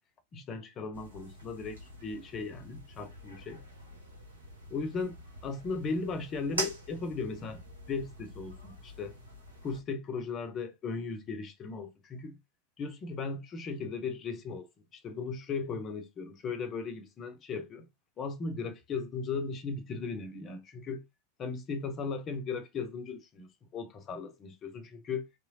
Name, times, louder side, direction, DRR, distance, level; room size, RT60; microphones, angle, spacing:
voice 1, 0.3-3.6 4.7-7.6 7.9-9.2 9.6-12.4 12.8-17.9 18.2-21.0 21.4-23.5 23.7-25.3, left 4 dB, 30° left, 0.7 m, -37 dB
sound 1, 0.9-9.8, right 1 dB, 80° right, 1.2 m, -44 dB
3.0 x 3.0 x 2.6 m
figure-of-eight pair, 90°, 0 cm